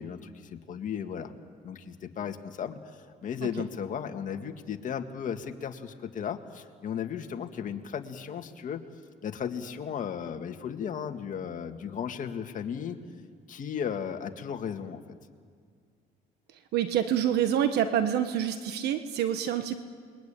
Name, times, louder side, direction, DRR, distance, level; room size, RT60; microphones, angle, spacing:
voice 1, 0.0-1.3 1.6-8.8 9.2-13.0 13.5-15.0, left 7 dB, 50° left, 5 dB, 2.0 m, -35 dB
voice 2, 16.7-19.7, right 10 dB, 75° right, 9 dB, 1.4 m, -27 dB
29.0 x 22.0 x 9.0 m, 2.1 s
cardioid pair, 110°, 17 cm